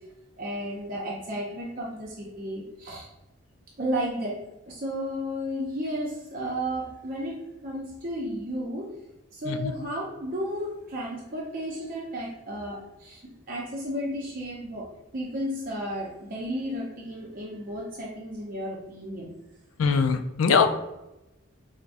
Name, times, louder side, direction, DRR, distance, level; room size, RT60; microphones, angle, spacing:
voice 1, 0.4-3.1 3.8-4.4 4.7-7.3 7.6-8.9 9.3-13.2 13.5-14.9 15.1-19.3, equal, 40° right, -4 dB, 0.5 m, -33 dB
voice 2, 19.8-20.7, left 5 dB, 75° left, 8 dB, 0.3 m, -22 dB
4.7 x 2.1 x 2.5 m, 0.96 s
head